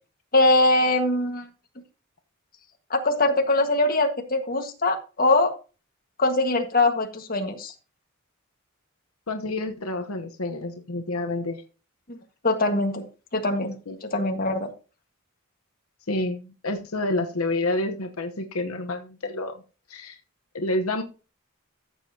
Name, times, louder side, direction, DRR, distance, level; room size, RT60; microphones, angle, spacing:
voice 1, 0.3-1.5 2.9-5.5 6.2-7.7 12.1-12.2 12.4-13.1 13.3-13.8 14.0-14.7, left 2 dB, 40° left, 4 dB, 1.6 m, -22 dB
voice 2, 9.3-11.6 13.9-14.0 16.1-19.5 19.9-20.2 20.5-21.0, left 2 dB, 85° left, 5 dB, 1.1 m, -28 dB
14.0 x 7.4 x 2.8 m, 0.33 s
head